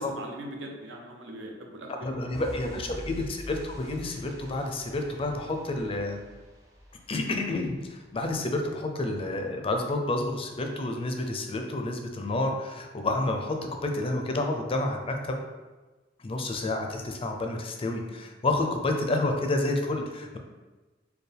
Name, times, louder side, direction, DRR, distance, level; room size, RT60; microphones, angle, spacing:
voice 1, 0.0-2.8, right 1 dB, 80° right, 1 dB, 0.6 m, -41 dB
voice 2, 2.0-6.2 7.1-13.6 13.8-15.3 16.2-20.4, left 2 dB, 30° left, 3 dB, 0.4 m, -29 dB
sound 1, 2.3-8.8 9.1-9.2, equal, 15° right, 0.6 m, -46 dB
4.4 x 2.2 x 3.3 m, 1.2 s
head